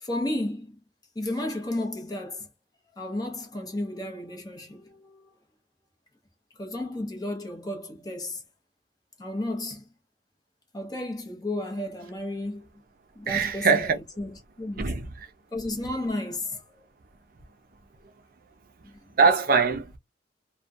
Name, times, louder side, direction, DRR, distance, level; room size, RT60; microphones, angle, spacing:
voice 1, 0.0-0.8 1.2-2.5 3.0-5.3 6.6-8.4 9.2-9.8 10.7-12.7 13.2-15.0 15.5-16.6 18.8-19.0, left 1 dB, 20° left, 0.7 m, -33 dB
voice 2, 13.3-14.0 14.8-15.1 19.2-20.0, right 5 dB, 50° right, 0.5 m, -22 dB
2.3 x 2.2 x 2.5 m
head